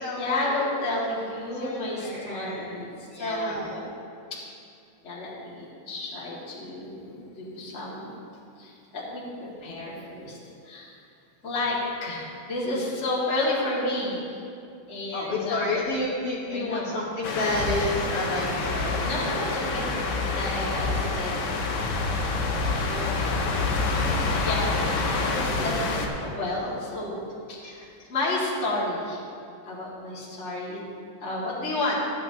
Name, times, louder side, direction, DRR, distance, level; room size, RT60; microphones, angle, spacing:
voice 1, 0.2-3.8 5.0-8.2 8.6-10.4 10.6-10.9 11.4-14.4 14.9-15.8 16.5-17.0 19.0-20.0 20.3-21.3 22.9-24.1 24.4-25.7 26.2-27.2 27.5-29.2 29.6-30.9 31.2-31.9, left 2 dB, 25° left, -6 dB, 2.0 m, -31 dB
voice 2, 1.6-2.7 3.1-3.7 15.1-19.0 27.6-27.7, left 2 dB, 55° left, -7 dB, 2.2 m, -30 dB
sound 1, 17.2-26.1, left 3 dB, 75° left, 2.3 m, -27 dB
14.5 x 9.6 x 2.9 m, 2.4 s
omnidirectional pair, 3.3 m